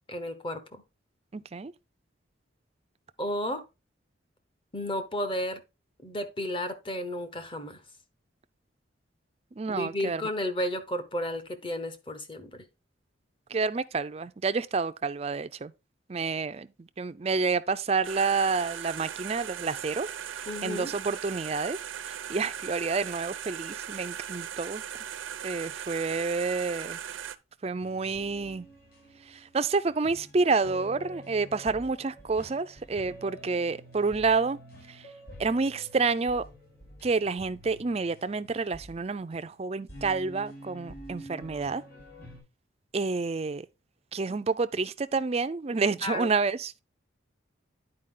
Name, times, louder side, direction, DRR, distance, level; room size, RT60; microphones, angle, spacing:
voice 1, 0.1-0.8 3.2-3.6 4.7-5.6 6.0-7.8 9.7-12.7 20.5-20.9 46.0-46.3, left 1 dB, 25° left, 1.0 m, -33 dB
voice 2, 1.3-1.7 9.6-10.2 13.5-15.7 16.1-20.1 20.6-24.8 25.4-27.0 27.6-28.7 29.3-34.6 34.9-35.1 35.4-36.4 37.0-41.8 42.9-43.7 44.1-46.8, right 4 dB, 30° right, 0.4 m, -29 dB
sound 1, 18.0-27.4, right 9 dB, 85° right, 0.6 m, -38 dB
sound 2, 27.8-42.4, equal, 50° left, 4.4 m, -48 dB
9.9 x 4.7 x 3.7 m
head